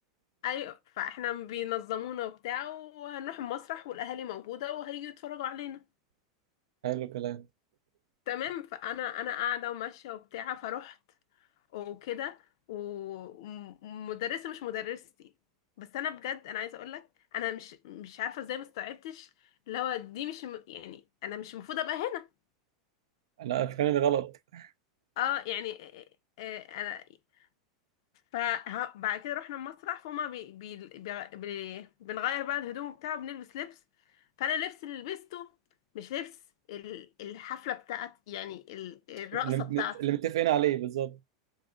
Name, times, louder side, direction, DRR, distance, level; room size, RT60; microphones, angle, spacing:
voice 1, 0.4-5.8 8.3-11.0 11.7-12.4 12.7-15.3 15.8-17.1 17.3-19.3 19.7-22.3 25.2-26.0 26.4-27.0 28.3-33.8 34.4-35.5 35.9-36.4 36.7-40.0, left 11 dB, 70° left, 0.5 m, -36 dB
voice 2, 6.8-7.4 23.4-24.7 39.4-41.2, right 12 dB, 80° right, 0.4 m, -29 dB
2.6 x 2.5 x 3.7 m
hypercardioid pair, 115°, 3 cm